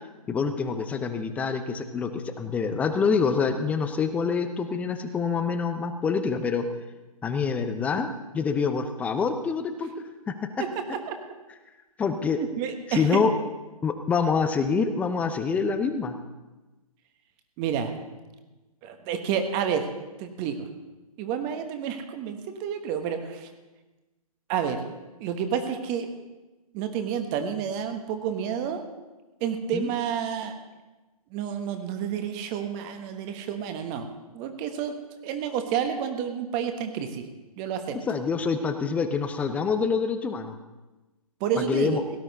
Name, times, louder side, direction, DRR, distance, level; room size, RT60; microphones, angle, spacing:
voice 1, 0.3-6.6 7.2-8.1 8.3-9.9 10.3-10.5 12.0-12.4 12.9-13.3 13.8-16.1 29.7-29.9 38.1-40.6 41.6-42.0, left 5 dB, 5° left, 9 dB, 0.6 m, -26 dB
voice 2, 10.6-11.1 12.4-13.2 17.6-17.9 18.8-19.9 20.2-20.7 21.2-23.5 24.5-24.8 25.2-26.1 26.7-28.8 29.4-30.5 31.3-34.1 34.3-34.9 35.2-37.3 37.6-38.0 41.4-42.0, right 8 dB, 25° right, 7 dB, 1.3 m, -29 dB
17.5 x 12.0 x 4.1 m, 1.1 s
figure-of-eight pair, 135°, 19 cm